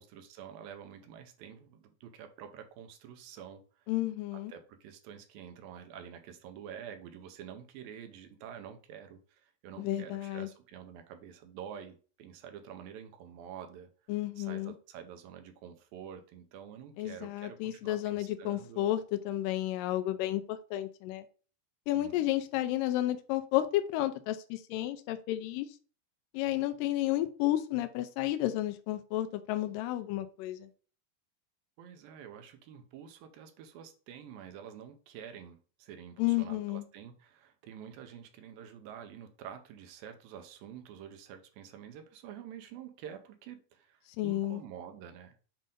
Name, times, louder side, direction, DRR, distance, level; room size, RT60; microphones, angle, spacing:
voice 1, 0.0-3.9 4.3-13.9 14.4-18.9 21.9-22.2 31.8-45.4, right 8 dB, 75° right, 7 dB, 2.4 m, -48 dB
voice 2, 3.9-4.5 9.8-10.5 14.1-14.7 17.0-21.3 21.9-25.7 26.3-30.7 36.2-36.8 44.2-44.6, left 14 dB, 85° left, 9 dB, 2.0 m, -32 dB
7.6 x 2.6 x 5.2 m, 0.39 s
omnidirectional pair, 4.4 m